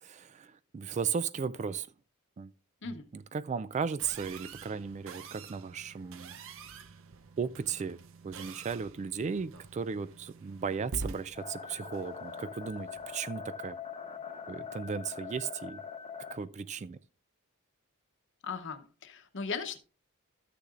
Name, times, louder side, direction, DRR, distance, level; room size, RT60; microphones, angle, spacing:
voice 1, 0.0-1.9 2.4-2.5 3.1-6.3 7.4-13.8 14.5-15.8 16.3-17.0, right 6 dB, 35° right, 0.3 m, -36 dB
sound 1, 4.0-13.1, right 4 dB, 65° right, 0.7 m, -47 dB
sound 2, 11.4-16.4, left 6 dB, 30° left, 0.9 m, -43 dB
voice 2, 18.4-19.8, left 5 dB, 60° left, 0.9 m, -38 dB
13.0 x 6.7 x 2.5 m
head